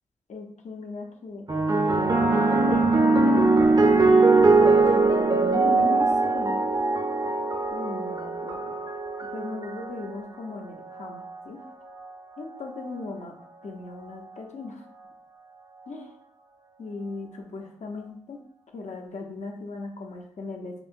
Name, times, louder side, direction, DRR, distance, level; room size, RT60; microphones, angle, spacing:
voice 1, 0.3-1.4 2.0-3.9 4.6-6.6 7.7-8.6 9.3-11.6 12.4-13.3 13.6-14.8 15.9-16.1 16.8-18.4 18.7-20.7, left 3 dB, 70° left, 1 dB, 0.8 m, -38 dB
sound 1, 1.5-10.1 11.0-11.4, right 3 dB, 35° right, 0.6 m, -21 dB
5.5 x 2.1 x 2.6 m, 0.67 s
cardioid pair, 45°, 12 cm